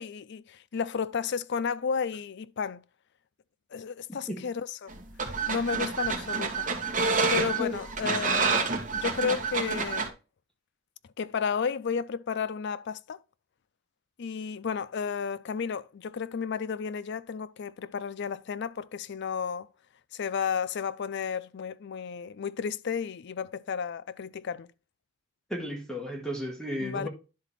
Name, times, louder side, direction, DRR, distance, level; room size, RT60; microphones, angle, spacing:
voice 1, 0.0-2.8 3.7-4.9 5.5-6.7 7.3-10.1 11.2-13.2 14.2-19.7 20.1-24.7 26.8-27.1, left 6 dB, 55° left, 0.4 m, -32 dB
sound 1, 4.9-10.1, right 4 dB, 40° right, 1.6 m, -28 dB
voice 2, 7.4-7.8 25.5-27.1, left 1 dB, 5° left, 1.2 m, -34 dB
10.5 x 4.0 x 4.2 m
head